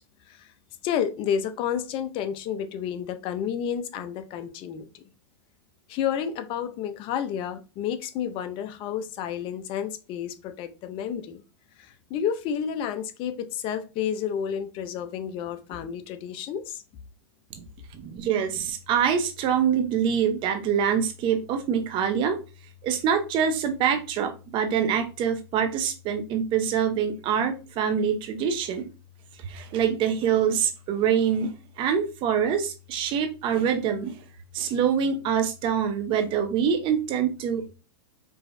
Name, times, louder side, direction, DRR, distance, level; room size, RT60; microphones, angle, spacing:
voice 1, 0.8-5.0 5.9-11.4 11.8-16.8, left 8 dB, 40° left, 0.6 m, -30 dB
voice 2, 17.9-22.4 22.8-28.9 29.4-31.5 31.8-34.2 34.5-37.7, right 7 dB, 35° right, 0.9 m, -25 dB
4.7 x 3.1 x 2.6 m
hypercardioid pair, 130°, 14 cm